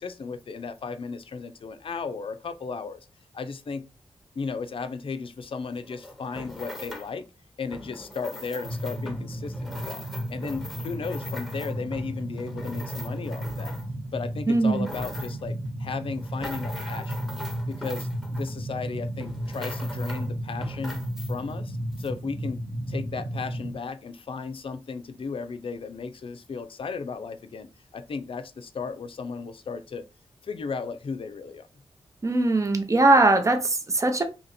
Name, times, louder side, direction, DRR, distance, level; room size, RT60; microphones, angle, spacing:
voice 1, 0.0-3.0 3.3-3.9 4.4-7.3 7.6-10.0 10.3-13.7 14.1-17.2 17.7-21.0 21.3-22.6 22.9-30.0 30.4-31.7, left 5 dB, 55° left, 0.5 m, -35 dB
sound 1, 5.7-7.2 7.7-14.1 14.5-15.5 16.0-18.8 19.2-20.3 20.6-21.6 21.9-22.1, left 1 dB, ahead, 1.2 m, -41 dB
sound 2, 8.6-23.7, right 1 dB, 85° right, 1.1 m, -34 dB
voice 2, 14.5-14.9 32.2-34.2, right 2 dB, 30° right, 0.7 m, -20 dB
2.9 x 2.6 x 4.1 m
cardioid pair, 60°, 11 cm